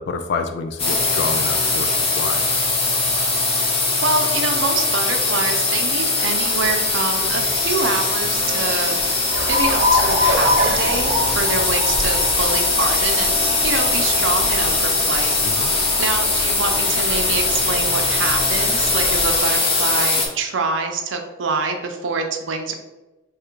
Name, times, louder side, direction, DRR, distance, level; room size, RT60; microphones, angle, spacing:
voice 1, 0.0-1.9 2.2-2.4 15.4-15.7, left 5 dB, 60° left, 7 dB, 0.3 m, -28 dB
sound 1, 0.8-20.3, left 3 dB, 30° left, 0.7 m, -20 dB
voice 2, 4.0-9.0 9.5-13.3 13.6-15.3 16.0-22.7, right 4 dB, 90° right, 4 dB, 0.6 m, -25 dB
Alarm, 9.3-19.4, left 1 dB, 50° right, 0.7 m, -26 dB
3.2 x 2.5 x 4.4 m, 1.1 s
head